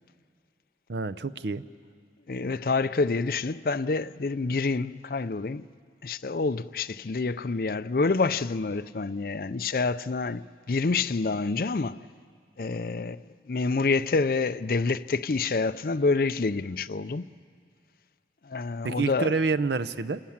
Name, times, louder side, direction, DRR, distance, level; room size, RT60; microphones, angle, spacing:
voice 1, 0.9-1.6 18.8-20.2, right 4 dB, 75° right, 0.7 m, -27 dB
voice 2, 2.3-5.7 6.0-12.0 12.6-17.3 18.4-19.3, left 3 dB, 55° left, 0.5 m, -27 dB
26.5 x 19.0 x 7.4 m
head